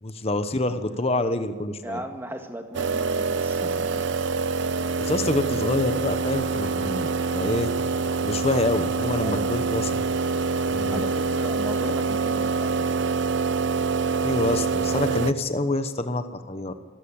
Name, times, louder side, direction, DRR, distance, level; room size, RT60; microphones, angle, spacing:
voice 1, 0.0-2.0 5.0-7.7 8.2-10.0 10.7-11.0 14.2-16.8, left 2 dB, 30° left, 9 dB, 1.0 m, -27 dB
voice 2, 1.8-4.0 9.2-9.9 10.9-12.9, equal, 10° right, 4 dB, 1.9 m, -37 dB
sound 1, 2.7-15.3, right 4 dB, 60° right, 0.8 m, -25 dB
24.5 x 14.0 x 8.9 m, 1.5 s
head